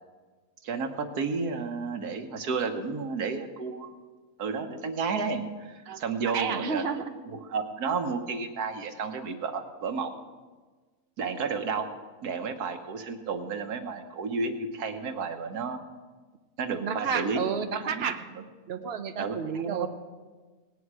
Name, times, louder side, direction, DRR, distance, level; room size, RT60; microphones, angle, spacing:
voice 1, 0.6-3.9 4.4-10.1 11.2-11.9 12.2-15.8 16.6-17.4 17.8-18.1 19.2-19.9, right 5 dB, 90° right, 6 dB, 1.6 m, -32 dB
voice 2, 5.9-7.2 16.8-19.9, right 7 dB, 50° right, 7 dB, 1.0 m, -32 dB
18.0 x 10.0 x 4.8 m, 1.4 s
omnidirectional pair, 1.6 m